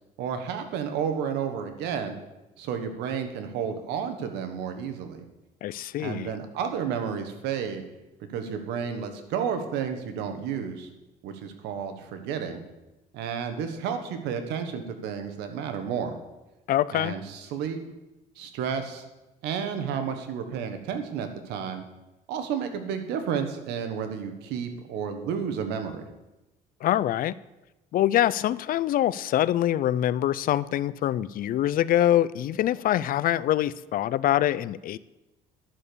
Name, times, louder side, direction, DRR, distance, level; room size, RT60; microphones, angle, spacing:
voice 1, 0.2-2.2 2.6-5.2 6.0-7.8 8.3-10.9 11.2-12.6 13.1-16.2 16.9-17.8 18.4-19.0 19.4-21.8 22.3-26.1, right 7 dB, 90° right, 8 dB, 1.4 m, -31 dB
voice 2, 5.6-6.3 16.7-17.2 26.8-27.3 27.9-35.0, left 12 dB, 55° left, 18 dB, 0.4 m, -24 dB
11.0 x 6.5 x 6.9 m, 1.0 s
cardioid pair, 110°, 17 cm